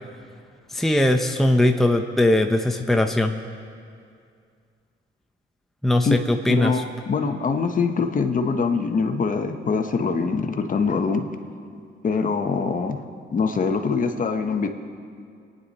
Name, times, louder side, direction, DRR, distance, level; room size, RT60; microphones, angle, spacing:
voice 1, 0.7-3.3 5.8-6.8, left 1 dB, ahead, 4 dB, 0.8 m, -20 dB
voice 2, 6.5-11.2 12.0-13.0 13.3-14.7, left 5 dB, 40° left, 5 dB, 1.2 m, -23 dB
25.0 x 10.0 x 4.3 m, 2.3 s
cardioid pair, 90°, 20 cm